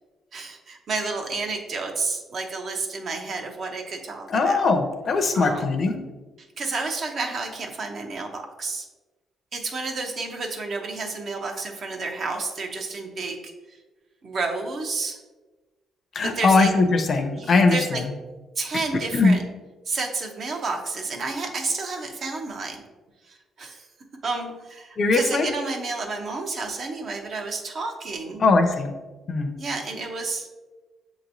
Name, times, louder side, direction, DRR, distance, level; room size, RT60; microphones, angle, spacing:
voice 1, 0.3-4.7 5.3-5.7 6.6-8.9 9.5-13.8 14.2-15.2 16.2-16.7 17.3-18.0 18.6-19.4 19.9-22.8 23.2-23.9 24.2-28.4 29.6-30.5, right 3 dB, 55° right, 3 dB, 0.7 m, -30 dB
voice 2, 4.3-6.0 16.1-18.0 19.1-19.4 25.0-25.5 28.4-28.9 29.3-29.5, left 3 dB, 50° left, 7 dB, 0.5 m, -20 dB
6.7 x 3.0 x 2.6 m, 1.2 s
cardioid pair, 90°, 0 cm